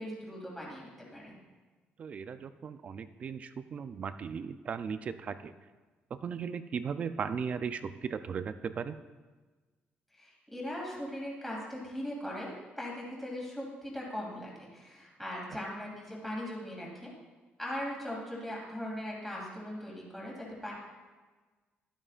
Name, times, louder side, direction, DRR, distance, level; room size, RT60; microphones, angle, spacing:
voice 1, 0.0-1.3 10.1-17.1 17.6-20.7, left 1 dB, 5° left, -4 dB, 2.5 m, -39 dB
voice 2, 2.0-5.5 6.1-9.0 15.5-15.6, right 6 dB, 35° right, 11 dB, 0.4 m, -37 dB
12.5 x 12.5 x 2.5 m, 1.3 s
cardioid pair, 155°, 4 cm